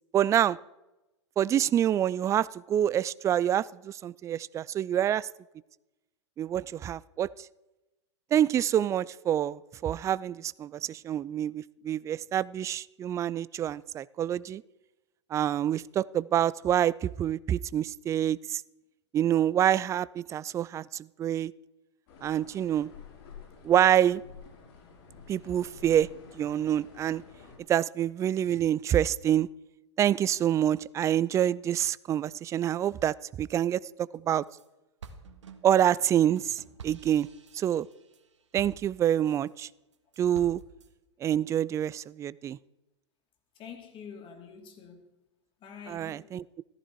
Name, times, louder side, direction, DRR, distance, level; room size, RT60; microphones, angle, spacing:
voice 1, 0.1-0.6 1.4-5.3 6.4-7.3 8.3-14.6 15.3-18.6 19.1-21.5 22.2-22.9 23.6-24.2 25.3-26.1 26.3-27.2 27.7-29.5 30.0-34.4 35.6-37.3 37.5-37.9 38.5-39.7 40.2-40.6 41.2-42.6 45.9-46.6, right 10 dB, 20° right, 0.3 m, -27 dB
sound 1, 22.1-27.6, left 6 dB, 55° left, 5.1 m, -50 dB
sound 2, 34.1-34.7 35.0-39.5 39.9-40.9, right 5 dB, 80° right, 1.9 m, -49 dB
voice 2, 43.6-45.0 45.6-46.3, left 6 dB, 35° left, 2.9 m, -46 dB
14.5 x 13.5 x 4.7 m
hypercardioid pair, 105°, 15 cm